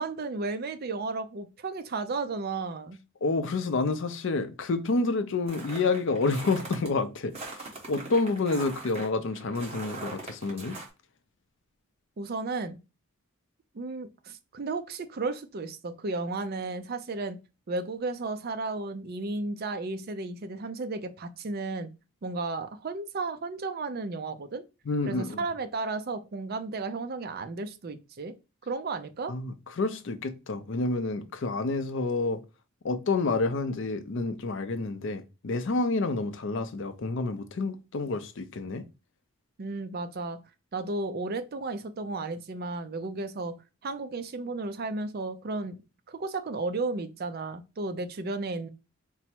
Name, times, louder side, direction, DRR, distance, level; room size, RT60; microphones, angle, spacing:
voice 1, 0.0-3.0 12.2-12.8 13.7-17.4 17.7-21.9 22.2-24.6 25.1-28.3 28.7-29.3 39.6-40.4 40.7-43.6 43.8-45.8 46.1-48.7, right 3 dB, 45° right, 0.4 m, -33 dB
voice 2, 3.2-10.8 24.9-25.4 29.3-32.4 32.8-38.8, left 3 dB, 55° left, 0.5 m, -29 dB
sound 1, 5.5-6.9 7.3-10.9, right 3 dB, 30° right, 1.0 m, -41 dB
4.4 x 2.0 x 4.3 m
head